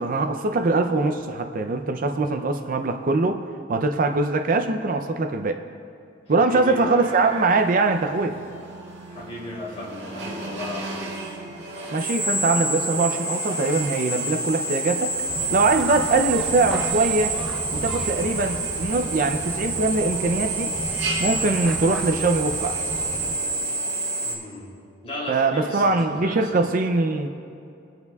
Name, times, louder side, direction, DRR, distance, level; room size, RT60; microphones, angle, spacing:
voice 1, 0.0-3.4 3.7-5.6 6.3-8.4 11.9-15.1 15.5-17.3 17.7-20.7 21.2-22.9 25.3-27.3, right 3 dB, 45° right, 6 dB, 0.5 m, -22 dB
voice 2, 6.4-7.0 9.1-11.1 15.8-16.0 24.2-24.8 25.0-26.4, left 1 dB, 30° left, -6 dB, 3.1 m, -36 dB
Drill, 7.0-24.3, right 3 dB, 60° right, 2.0 m, -29 dB
sound 1, 15.3-23.3, equal, ahead, 0.7 m, -35 dB
21.5 x 9.2 x 2.4 m, 2.6 s
head